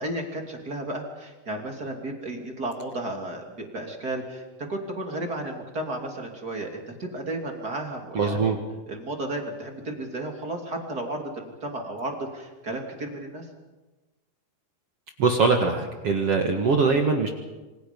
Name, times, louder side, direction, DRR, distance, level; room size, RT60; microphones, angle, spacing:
voice 1, 0.0-4.4 4.7-8.5 8.9-13.5, right 1 dB, 25° right, 2 dB, 2.8 m, -33 dB
voice 2, 8.1-8.6 15.2-17.3, right 4 dB, 50° right, 3 dB, 2.2 m, -22 dB
27.0 x 25.5 x 5.4 m, 1.2 s
omnidirectional pair, 4.5 m